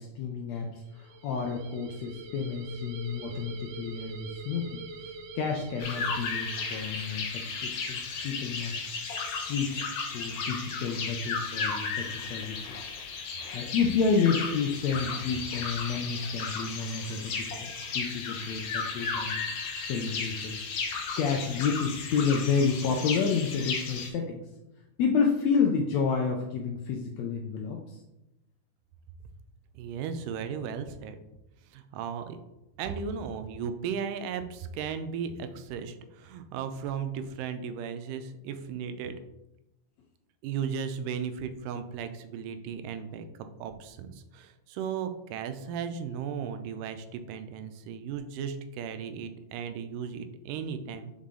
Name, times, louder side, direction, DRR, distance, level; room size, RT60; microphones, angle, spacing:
voice 1, 0.0-4.8 5.3-8.8 9.3-12.8 13.5-20.6 21.2-24.4 25.0-28.0, left 5 dB, 85° left, 2 dB, 1.6 m, -30 dB
sound 1, 0.8-7.2, right 3 dB, 70° right, 2.1 m, -45 dB
sound 2, 5.8-24.1, left 5 dB, 65° left, 1.5 m, -34 dB
voice 2, 29.8-31.2 31.7-32.4 32.8-39.2 40.4-51.1, right 7 dB, 90° right, 9 dB, 2.2 m, -36 dB
5.6 x 4.8 x 3.7 m, 0.92 s
omnidirectional pair, 3.7 m